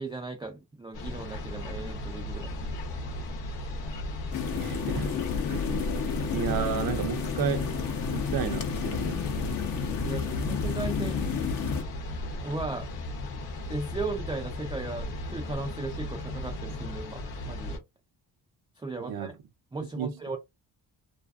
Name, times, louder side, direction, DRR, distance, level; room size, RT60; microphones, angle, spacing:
voice 1, 0.0-2.5 10.0-11.6 12.4-12.9 13.7-17.8 18.8-19.3 19.7-20.4, right 3 dB, 10° right, 0.4 m, -36 dB
sound 1, 0.9-17.8, left 1 dB, 85° left, 0.9 m, -35 dB
sound 2, 4.3-11.8, left 7 dB, 55° left, 0.7 m, -31 dB
voice 2, 4.6-5.2 5.5-5.8 6.3-7.7 8.1-9.2 19.1-19.3 20.0-20.1, right 8 dB, 55° right, 0.6 m, -32 dB
2.5 x 2.5 x 2.3 m
cardioid pair, 95°, 42 cm